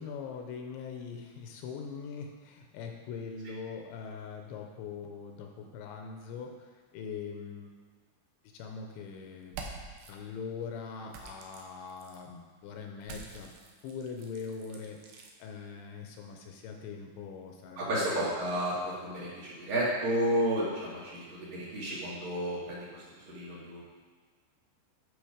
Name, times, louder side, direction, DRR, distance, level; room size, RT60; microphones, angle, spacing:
voice 1, 0.0-6.7 6.9-7.7 8.5-9.8 10.1-13.5 13.8-18.1, left 5 dB, 80° left, 3 dB, 2.8 m, -42 dB
sound 1, 9.4-10.1 11.1-12.2 13.0-15.3, right 4 dB, 85° right, 3.3 m, -47 dB
voice 2, 17.8-23.8, equal, 55° right, -8 dB, 2.9 m, -32 dB
10.5 x 6.1 x 5.0 m, 1.5 s
omnidirectional pair, 5.5 m